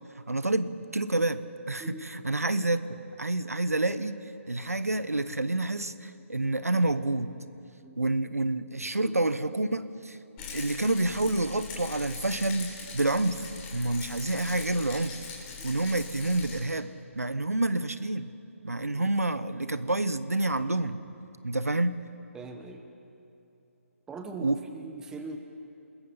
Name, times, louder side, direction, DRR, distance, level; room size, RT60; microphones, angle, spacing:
voice 1, 0.3-4.2 4.5-7.3 8.0-10.2 10.5-13.5 13.7-15.2 15.6-16.9 17.2-18.3 18.6-21.0 21.4-22.0 24.4-24.6, right 2 dB, 90° right, 13 dB, 1.0 m, -28 dB
voice 2, 8.8-9.1 10.4-10.6 15.5-15.8 18.9-19.1 22.3-22.8 24.1-25.4, right 3 dB, 10° right, 5 dB, 1.3 m, -42 dB
Rattle, 10.4-16.6, left 5 dB, 20° left, 3.5 m, -41 dB
28.0 x 20.5 x 5.7 m, 2.8 s
figure-of-eight pair, 145°, 8 cm